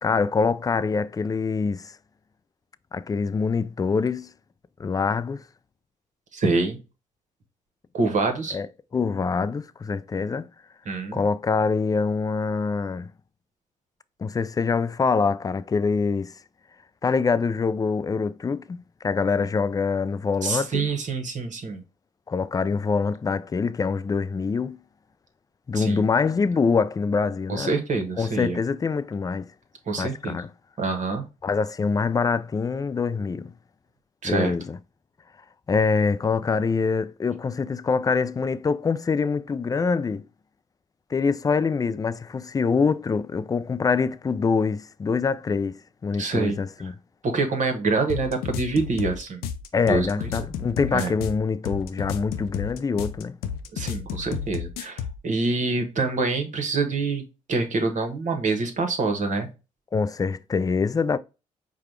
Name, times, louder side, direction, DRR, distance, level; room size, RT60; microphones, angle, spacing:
voice 1, 0.0-2.0 2.9-4.3 4.8-5.4 8.5-8.7 8.9-10.5 11.1-13.1 14.2-16.4 17.0-20.9 22.3-24.8 25.7-27.7 28.2-29.5 30.0-30.5 31.4-33.5 34.2-34.8 35.7-40.2 41.1-46.9 49.7-53.4 59.9-61.2, left 5 dB, 25° left, 0.3 m, -25 dB
voice 2, 6.3-6.8 7.9-8.6 10.9-11.2 20.4-21.8 25.7-26.0 27.5-28.6 29.9-30.4 30.8-31.2 34.2-34.5 46.2-46.6 47.2-49.4 49.9-50.3 50.9-51.1 53.7-59.5, right 3 dB, 50° right, 1.1 m, -26 dB
sound 1, 48.1-55.2, left 8 dB, 75° left, 0.5 m, -32 dB
4.9 x 2.3 x 4.5 m
hypercardioid pair, 50°, 16 cm